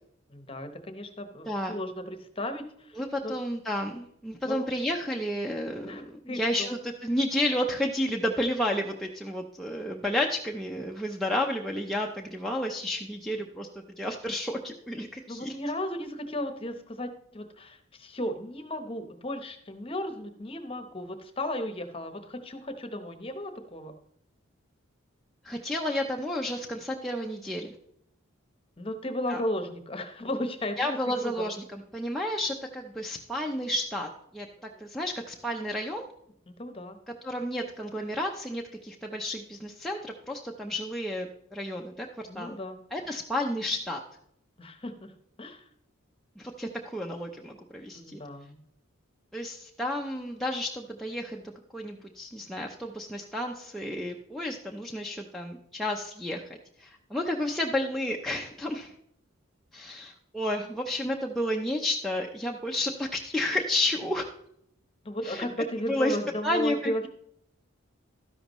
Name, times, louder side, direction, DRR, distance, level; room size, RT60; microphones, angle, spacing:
voice 1, 0.3-3.3 4.4-4.6 5.8-6.7 15.3-23.9 28.8-31.5 36.5-37.0 42.3-42.8 44.6-45.1 45.4-45.6 47.9-48.6 65.0-67.1, left 1 dB, 25° left, 8 dB, 0.9 m, -35 dB
voice 2, 3.0-13.7 14.0-15.5 25.4-27.7 29.3-29.4 30.8-34.5 34.8-36.1 37.2-42.1 42.3-42.6 42.9-44.0 46.4-48.2 49.3-51.4 51.7-56.4 56.8-58.9 59.7-64.3 65.2-65.5 65.9-66.2 66.4-66.9, left 1 dB, ahead, -1 dB, 0.5 m, -31 dB
12.5 x 10.5 x 3.0 m, 0.72 s
head